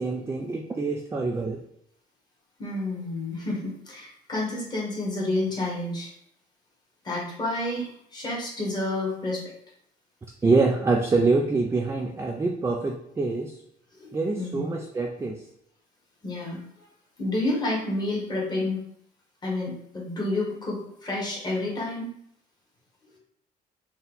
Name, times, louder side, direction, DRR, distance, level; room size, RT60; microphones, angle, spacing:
voice 1, 0.0-1.6 10.4-13.5 14.1-15.4, right 3 dB, 15° right, 1 dB, 0.4 m, -25 dB
voice 2, 2.6-6.1 7.0-9.4 13.9-14.1 14.3-14.6 16.2-16.8 17.2-18.8 19.4-22.1, left 2 dB, 25° left, -4 dB, 1.5 m, -29 dB
4.2 x 2.2 x 3.9 m, 0.70 s
cardioid pair, 110°, 17 cm